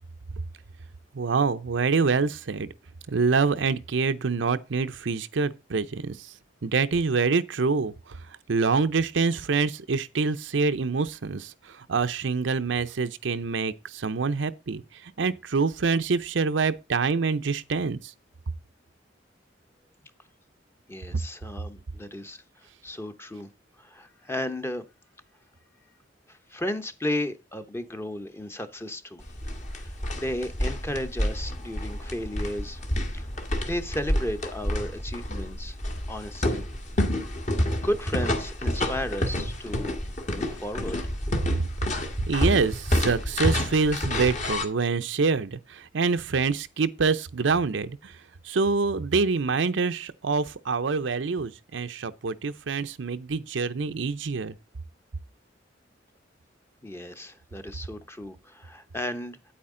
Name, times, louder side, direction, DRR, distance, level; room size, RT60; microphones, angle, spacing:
voice 1, 1.1-2.7 3.1-6.2 6.6-8.2 8.5-14.8 15.2-18.0 42.3-48.1 48.4-54.5, right 4 dB, 70° right, 0.6 m, -26 dB
voice 2, 20.9-22.4 22.8-23.5 23.8-24.9 26.3-29.2 29.7-32.8 33.1-33.3 33.6-35.8 36.1-36.6 37.7-40.0 40.3-41.0 56.8-59.4, left 1 dB, 15° left, 0.8 m, -34 dB
sound 1, 29.2-44.6, left 1 dB, 40° left, 1.7 m, -29 dB
9.1 x 8.7 x 3.8 m
head